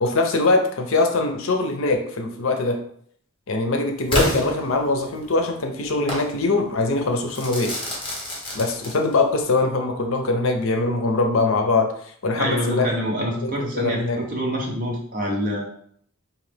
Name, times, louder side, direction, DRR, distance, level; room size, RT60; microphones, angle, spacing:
voice 1, 0.0-2.8 3.5-7.7 8.5-11.9 12.2-12.9 13.4-14.2, left 3 dB, 65° left, 4 dB, 0.6 m, -22 dB
Crackle / Fireworks, 4.1-5.3 6.1-6.3 7.3-9.3, left 1 dB, 25° left, 1.0 m, -27 dB
voice 2, 12.3-15.7, equal, 40° right, -1 dB, 0.9 m, -26 dB
3.8 x 2.8 x 3.3 m, 0.63 s
head